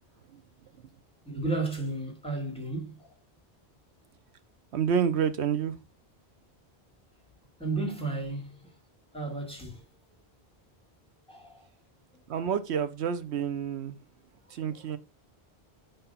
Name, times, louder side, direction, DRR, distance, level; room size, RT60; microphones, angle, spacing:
voice 1, 1.3-3.1 7.6-8.7 9.1-9.9 11.3-11.7 12.1-12.2 14.6-14.9, right 3 dB, 5° left, 2.0 m, -34 dB
voice 2, 4.7-5.7 12.3-14.0 14.5-15.0, right 7 dB, 85° right, 1.0 m, -28 dB
5.1 x 4.5 x 5.5 m
omnidirectional pair, 1.1 m